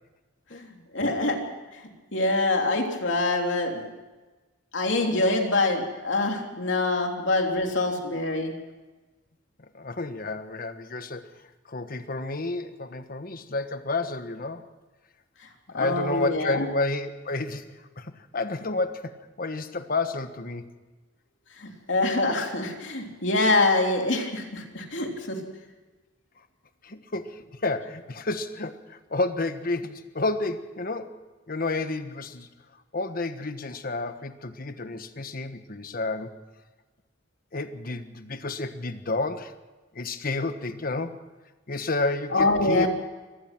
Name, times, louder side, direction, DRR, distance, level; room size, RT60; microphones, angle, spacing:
voice 1, 0.9-1.4 2.1-3.8 4.7-8.5 15.7-16.7 21.6-25.4 42.3-42.9, left 2 dB, 70° left, 2 dB, 3.2 m, -25 dB
voice 2, 9.7-11.3 11.7-14.6 15.7-17.6 18.0-20.7 26.8-31.2 31.5-32.5 32.9-36.4 37.5-39.5 39.9-41.2 41.7-42.9, left 3 dB, 50° left, 9 dB, 1.3 m, -30 dB
24.5 x 18.0 x 6.0 m, 1.2 s
head